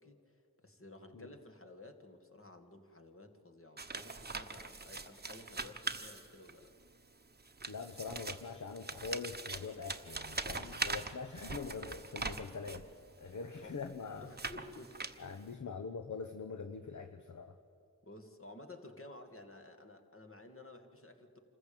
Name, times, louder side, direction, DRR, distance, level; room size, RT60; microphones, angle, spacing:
voice 1, 0.0-6.7 10.5-10.8 13.3-13.8 14.2-15.5 18.0-21.4, left 2 dB, 35° left, 5 dB, 2.2 m, -54 dB
sound 1, 3.8-6.7 7.4-12.9 13.6-15.5, right 3 dB, 25° right, 1.1 m, -42 dB
voice 2, 7.7-12.9 13.2-14.3 15.2-17.5, left 4 dB, 50° left, 8 dB, 1.0 m, -43 dB
26.5 x 14.5 x 8.8 m, 2.5 s
wide cardioid pair, 55°, 38 cm